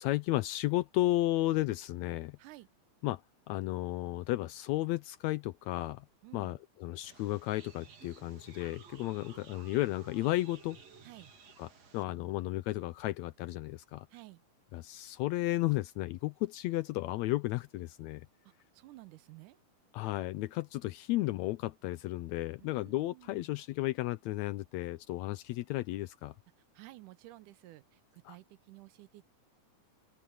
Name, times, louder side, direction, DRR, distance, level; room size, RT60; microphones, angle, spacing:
voice 1, 0.0-2.4 3.0-3.2 3.5-6.0 6.3-10.8 11.6-14.1 14.7-18.3 19.9-26.3 28.2-28.4, left 17 dB, 80° left, 1.7 m, -33 dB
voice 2, 6.2-6.6 11.0-11.3 14.1-14.4 18.4-19.6 22.6-23.5 26.7-29.2, right 18 dB, 85° right, 2.3 m, -53 dB
sound 1, 7.0-12.0, right 5 dB, 55° right, 3.6 m, -55 dB
open air
omnidirectional pair, 3.6 m